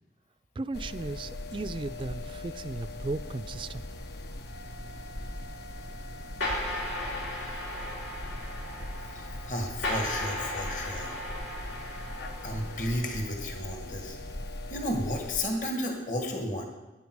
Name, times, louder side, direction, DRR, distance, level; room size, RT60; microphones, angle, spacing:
voice 1, 0.6-3.8, right 3 dB, 30° right, 14 dB, 0.3 m, -36 dB
sound 1, 0.7-15.4, left 1 dB, 70° left, 0.8 m, -40 dB
sound 2, 6.4-13.3, left 1 dB, 85° left, 2.8 m, -36 dB
voice 2, 9.1-11.1 12.4-14.2 14.7-16.6, left 1 dB, 45° left, 2 dB, 1.8 m, -33 dB
12.5 x 10.5 x 4.7 m, 1.1 s
head